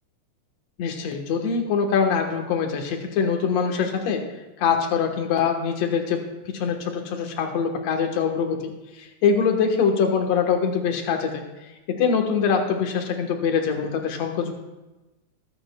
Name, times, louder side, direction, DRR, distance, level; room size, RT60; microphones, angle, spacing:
voice 1, 0.8-4.2 4.6-8.6 9.2-11.4 11.9-14.5, left 6 dB, 60° left, 3 dB, 2.4 m, -23 dB
24.0 x 8.9 x 2.3 m, 1.0 s
omnidirectional pair, 3.6 m